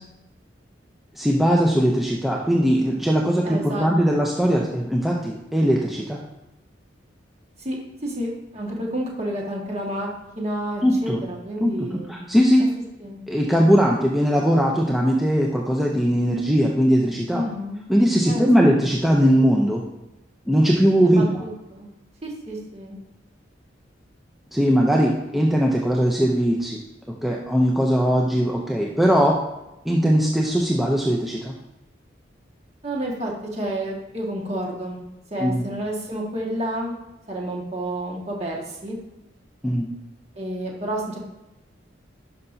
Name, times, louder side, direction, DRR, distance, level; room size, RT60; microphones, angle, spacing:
voice 1, 1.2-6.2 10.8-11.2 11.6-11.7 12.1-12.7 13.3-17.4 17.9-19.8 20.5-21.2 24.5-26.8 27.2-29.4 29.8-31.5 35.4-35.7 39.6-39.9, equal, ahead, -2 dB, 0.5 m, -20 dB
voice 2, 3.4-4.2 7.6-7.8 8.0-10.1 10.4-12.3 12.6-12.7 13.0-13.2 17.3-17.8 18.2-18.5 18.8-19.0 21.0-21.9 22.2-23.0 32.8-35.0 35.3-36.9 37.3-39.0 40.3-41.2, right 1 dB, 35° right, -2 dB, 1.7 m, -30 dB
11.0 x 5.6 x 2.7 m, 0.95 s
head